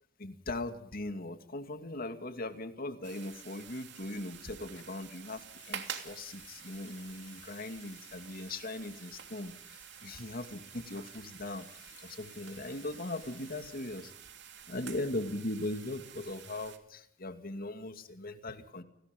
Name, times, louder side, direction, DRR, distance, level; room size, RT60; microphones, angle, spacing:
voice 1, 0.2-11.7 12.0-14.1 14.7-18.8, left 2 dB, 50° left, 8 dB, 2.4 m, -39 dB
sound 1, 3.0-16.8, right 9 dB, 60° right, 2.9 m, -49 dB
Water tap faucet / Sink (filling or washing) / Liquid, 4.7-5.0 5.4-14.2 14.4-14.8, left 9 dB, 90° left, 6.5 m, -60 dB
29.5 x 19.5 x 5.4 m, 0.70 s
head